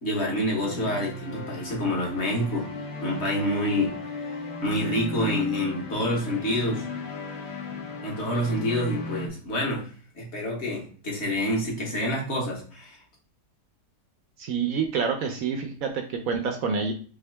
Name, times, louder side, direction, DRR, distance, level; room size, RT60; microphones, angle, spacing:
voice 1, 0.0-2.7 3.0-6.8 8.0-9.9 10.1-13.0, equal, 40° left, -2 dB, 1.5 m, -28 dB
sound 1, 0.6-9.3, left 2 dB, 75° left, 1.4 m, -36 dB
voice 2, 14.4-16.9, right 5 dB, 70° right, 5 dB, 0.9 m, -27 dB
3.6 x 3.5 x 3.3 m, 0.42 s
omnidirectional pair, 1.8 m